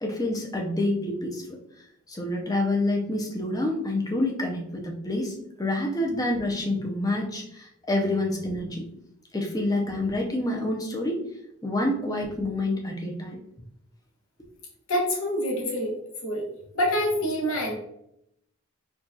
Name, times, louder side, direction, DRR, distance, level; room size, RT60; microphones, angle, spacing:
voice 1, 0.0-1.5 2.1-8.8 9.3-11.2 11.6-13.4, left 1 dB, 15° left, 0 dB, 0.5 m, -27 dB
voice 2, 14.9-15.9 16.2-16.4 16.7-17.7, equal, 70° left, -2 dB, 1.2 m, -26 dB
4.5 x 2.4 x 2.7 m, 0.78 s
head